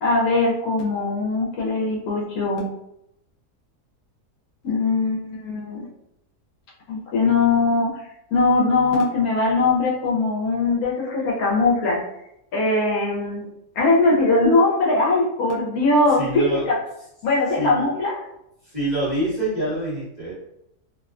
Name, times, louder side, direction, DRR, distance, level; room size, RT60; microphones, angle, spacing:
voice 1, 0.0-2.7 4.6-5.9 6.9-7.9 8.3-12.0 12.5-13.5 13.8-16.8 17.2-18.3, left 3 dB, 75° left, -3 dB, 1.0 m, -20 dB
voice 2, 16.2-16.6 17.6-17.9 18.6-20.3, right 1 dB, 30° right, -9 dB, 1.0 m, -26 dB
2.8 x 2.2 x 2.4 m, 0.81 s
omnidirectional pair, 1.7 m